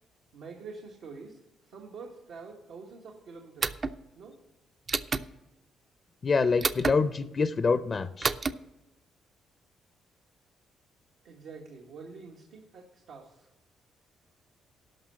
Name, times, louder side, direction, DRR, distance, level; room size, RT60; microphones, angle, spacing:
voice 1, 0.3-3.8 4.1-4.4 11.2-13.6, right 4 dB, 80° right, 0 dB, 1.6 m, -46 dB
sound 1, 3.6-4.0 4.9-5.3 6.6-7.0 8.2-8.5, right 4 dB, 35° right, 0.5 m, -28 dB
voice 2, 6.2-8.3, left 4 dB, 40° left, 12 dB, 0.5 m, -26 dB
12.0 x 5.7 x 7.5 m, 0.98 s
cardioid pair, 80°, 0 cm